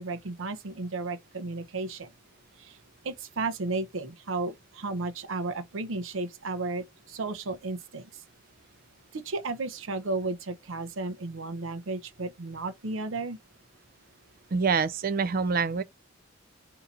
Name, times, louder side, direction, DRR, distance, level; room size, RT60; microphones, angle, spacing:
voice 1, 0.0-2.1 2.6-2.8 3.0-8.2 9.1-13.4, right 3 dB, 80° right, 0.7 m, -33 dB
voice 2, 14.5-15.8, right 5 dB, 45° right, 0.4 m, -26 dB
4.0 x 2.8 x 3.7 m
head